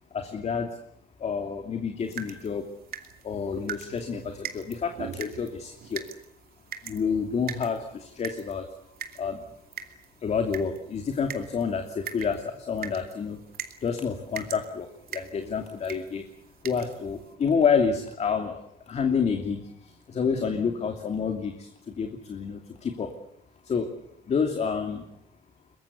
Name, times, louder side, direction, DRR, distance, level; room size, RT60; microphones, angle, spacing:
voice 1, 0.3-0.7 1.2-2.6 3.2-4.2 4.5-4.9 5.2-6.0 6.9-7.8 8.2-8.6 9.2-9.4 10.2-11.8 12.1-12.4 12.7-13.4 13.8-14.9 15.1-16.2 16.6-18.6 18.9-19.6 20.1-21.5 22.0-23.1 23.7-23.9 24.3-25.0, left 6 dB, 40° left, 5 dB, 2.8 m, -28 dB
sound 1, 2.0-17.3, right 9 dB, 65° right, 2.7 m, -43 dB
23.5 x 21.5 x 8.3 m, 0.77 s
cardioid pair, 110°, 17 cm